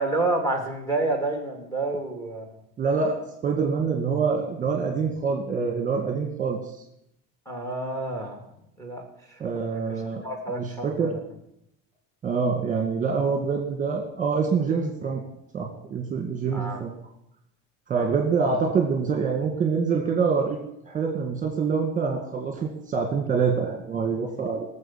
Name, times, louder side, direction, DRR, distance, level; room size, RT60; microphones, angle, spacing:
voice 1, 0.0-2.4 7.5-8.4 8.8-9.0 9.3-9.4 9.7-9.8 10.2-11.2 16.5-16.8 18.0-18.1, right 2 dB, 10° left, 3 dB, 2.7 m, -29 dB
voice 2, 2.8-6.6 9.4-10.2 10.5-11.1 12.2-15.2 15.5-16.9 17.9-24.7, right 5 dB, 20° right, 2 dB, 2.1 m, -26 dB
18.0 x 7.3 x 7.4 m, 0.79 s
cardioid pair, 150°, 34 cm